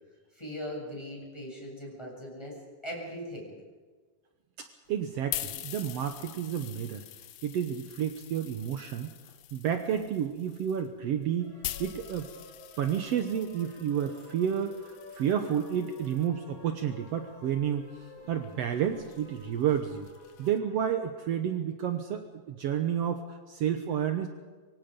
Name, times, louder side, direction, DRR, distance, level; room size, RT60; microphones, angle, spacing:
voice 1, 0.3-2.6 2.8-3.5, equal, 5° left, -3 dB, 7.3 m, -39 dB
voice 2, 4.6-7.0 7.4-9.1 9.5-11.5 11.8-12.3 12.8-17.8 18.3-20.1 20.4-24.3, right 9 dB, 75° right, 7 dB, 1.5 m, -30 dB
sound 1, 4.9-16.3 17.1-20.6, left 14 dB, 80° left, 2.7 m, -44 dB
sound 2, 11.4-21.0, left 1 dB, 25° left, 5.5 m, -52 dB
25.5 x 24.0 x 5.3 m, 1.4 s
omnidirectional pair, 4.3 m